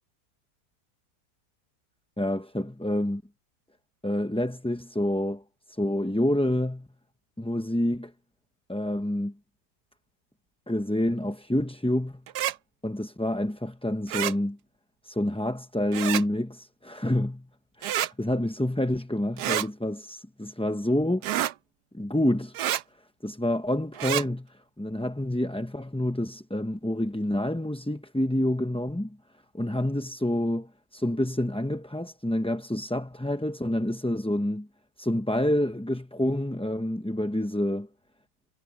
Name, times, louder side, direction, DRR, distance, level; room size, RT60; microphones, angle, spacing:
voice 1, 2.2-3.2 4.0-5.4 5.8-6.9 7.4-8.1 8.7-9.4 10.7-12.2 12.8-14.6 15.0-17.5 17.8-21.3 21.9-22.5 23.2-29.2 29.5-34.7 35.0-37.9, left 1 dB, 10° left, 0.4 m, -28 dB
sound 1, 12.3-12.5 14.1-14.3 15.9-16.2 17.8-18.1 19.4-19.7 21.2-21.5 22.5-22.8 23.9-24.2, right 12 dB, 90° right, 1.3 m, -28 dB
omnidirectional pair, 1.7 m